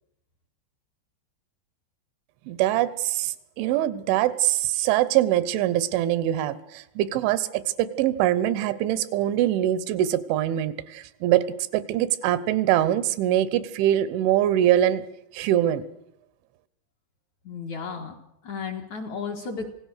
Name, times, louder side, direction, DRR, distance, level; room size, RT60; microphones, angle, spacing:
voice 1, 2.5-11.5 11.7-15.0 15.3-15.8, right 12 dB, 90° right, 16 dB, 3.4 m, -23 dB
voice 2, 17.4-18.1 18.4-19.7, left 5 dB, 55° left, 2 dB, 2.1 m, -33 dB
27.5 x 17.5 x 6.6 m, 0.81 s
omnidirectional pair, 5.3 m